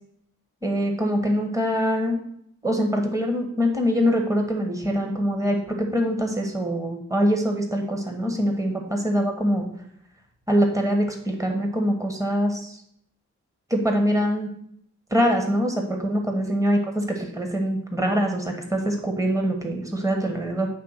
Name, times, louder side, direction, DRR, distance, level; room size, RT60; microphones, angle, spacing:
voice 1, 0.6-2.2 2.6-9.7 10.5-12.8 13.7-14.5 15.1-20.7, equal, 10° right, 2 dB, 1.3 m, -24 dB
9.4 x 3.4 x 6.5 m, 0.71 s
wide cardioid pair, 105°, 29 cm